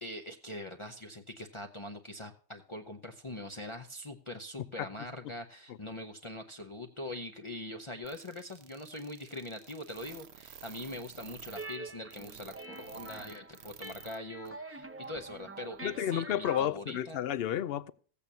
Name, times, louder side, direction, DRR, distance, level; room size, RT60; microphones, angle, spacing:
voice 1, 0.0-17.2, left 1 dB, 30° left, 0.8 m, -43 dB
sound 1, 8.0-14.2 14.4-14.5 15.0-15.1, right 8 dB, 75° right, 1.0 m, -51 dB
sound 2, 11.5-16.6, right 3 dB, 15° right, 0.7 m, -45 dB
voice 2, 15.8-17.9, left 11 dB, 65° left, 0.8 m, -31 dB
15.5 x 8.5 x 2.7 m
omnidirectional pair, 1.1 m